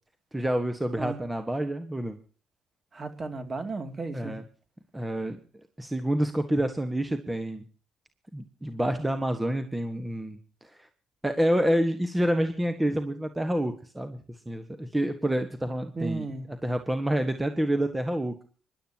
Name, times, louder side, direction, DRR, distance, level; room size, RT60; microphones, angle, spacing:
voice 1, 0.3-2.2 4.1-4.4 4.9-5.4 5.8-7.6 8.3-10.4 10.7-10.9 11.2-14.2 14.5-18.4, right 1 dB, 10° right, 8 dB, 1.4 m, -28 dB
voice 2, 2.9-4.3 15.9-16.4, right 3 dB, 35° right, 8 dB, 2.6 m, -34 dB
25.0 x 11.5 x 2.9 m, 0.39 s
cardioid pair, 90°, 0 cm